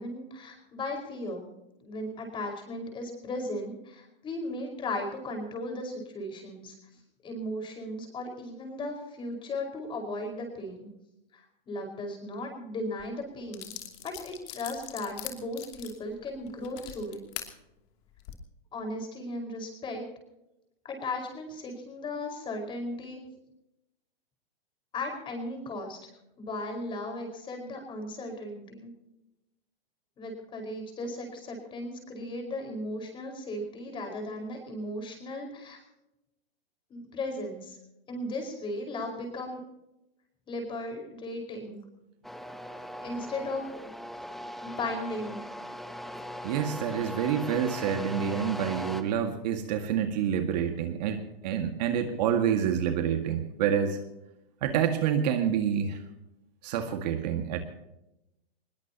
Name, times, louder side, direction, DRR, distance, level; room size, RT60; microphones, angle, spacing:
voice 1, 0.0-1.5 1.8-6.7 7.2-10.9 11.3-13.7 14.0-17.2 18.7-20.0 20.8-23.2 24.9-26.0 26.4-28.9 30.2-35.8 36.9-37.8 38.1-39.6 40.5-41.8 43.0-43.9 44.6-45.4, left 1 dB, 15° left, 3 dB, 5.1 m, -36 dB
sound 1, 13.0-13.1 13.5-17.5 18.1-18.3, left 12 dB, 35° left, 2.8 m, -41 dB
sound 2, 42.2-49.0, equal, ahead, 0.8 m, -39 dB
voice 2, 46.4-54.0 54.6-56.0 56.6-57.6, right 8 dB, 45° right, 6 dB, 1.9 m, -28 dB
21.5 x 21.0 x 2.9 m, 0.89 s
hypercardioid pair, 150°, 29 cm